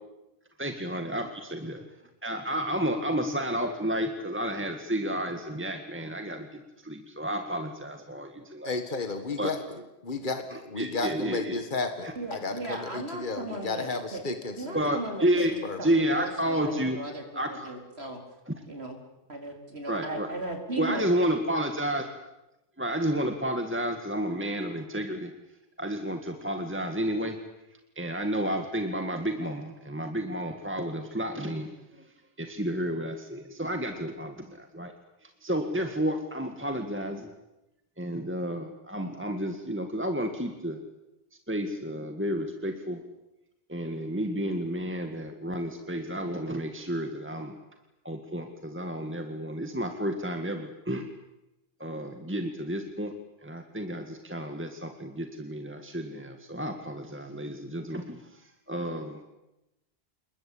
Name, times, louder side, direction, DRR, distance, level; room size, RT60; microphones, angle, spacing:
voice 1, 0.6-1.8 2.2-8.8 9.4-9.5 10.5-11.6 12.0-12.1 14.7-15.5 15.8-17.0 17.3-17.7 18.5-18.6 19.9-20.3 20.8-22.0 22.8-25.3 25.8-27.4 28.0-32.1 32.4-34.9 35.2-37.3 38.0-40.8 41.5-43.0 43.7-47.5 48.0-51.0 51.8-53.1 53.4-59.2, equal, 10° right, 5 dB, 2.0 m, -31 dB
voice 2, 8.6-9.6 10.0-10.4 10.7-14.8 15.6-15.8, left 3 dB, 50° left, 7 dB, 2.1 m, -32 dB
voice 3, 12.2-14.2 14.6-15.5 15.8-18.2 18.7-19.0 19.3-21.0, right 2 dB, 70° right, 3 dB, 4.7 m, -36 dB
28.5 x 21.5 x 8.7 m, 0.94 s
omnidirectional pair, 1.1 m